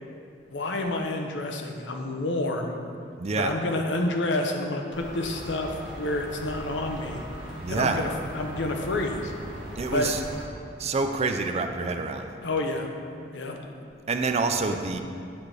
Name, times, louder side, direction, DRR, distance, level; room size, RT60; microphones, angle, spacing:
voice 1, 0.5-2.8 3.3-7.2 7.7-8.1 8.3-9.3 9.9-10.1 12.4-12.9 13.3-13.6, left 2 dB, 75° left, 3 dB, 0.7 m, -29 dB
voice 2, 3.2-3.5 7.6-8.0 9.8-10.2 10.8-12.3 14.1-15.0, right 4 dB, 35° right, 6 dB, 0.4 m, -27 dB
sound 1, 4.9-10.5, equal, 80° right, 1.3 m, -39 dB
8.6 x 3.3 x 5.9 m, 2.3 s
head